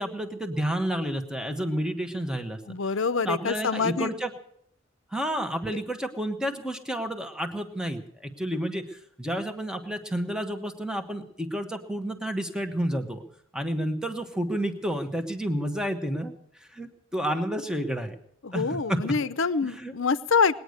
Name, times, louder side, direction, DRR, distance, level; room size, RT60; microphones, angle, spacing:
voice 1, 0.0-2.6 3.2-4.3 5.1-13.2 13.5-16.3 16.6-18.2 18.5-19.0 19.6-19.9, equal, 5° right, 6 dB, 1.2 m, -30 dB
voice 2, 2.7-4.1 18.4-20.6, left 5 dB, 65° left, 14 dB, 0.7 m, -26 dB
20.0 x 9.5 x 6.5 m, 0.72 s
head